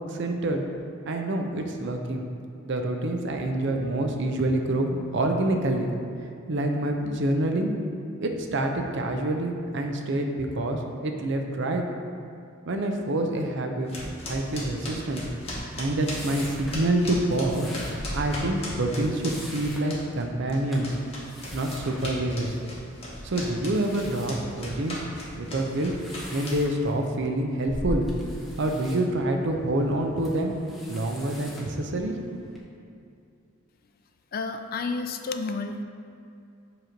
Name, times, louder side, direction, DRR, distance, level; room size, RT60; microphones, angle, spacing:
voice 1, 0.1-0.6 1.0-2.2 2.6-5.9 6.5-7.7 8.2-11.8 12.7-13.9 14.3-15.3 15.8-17.7 18.1-20.9 21.5-22.6 23.2-25.0 25.4-25.9 26.3-28.1 28.6-30.6 30.9-32.2, right 1 dB, 60° right, 3 dB, 0.6 m, -27 dB
sound 1, 13.9-20.2 20.5-26.9, left 1 dB, 30° left, 1.3 m, -37 dB
sound 2, 15.8-32.6, equal, ahead, 0.8 m, -42 dB
voice 2, 34.3-35.8, left 4 dB, 45° left, 6 dB, 0.4 m, -31 dB
7.8 x 3.1 x 5.0 m, 2.5 s
head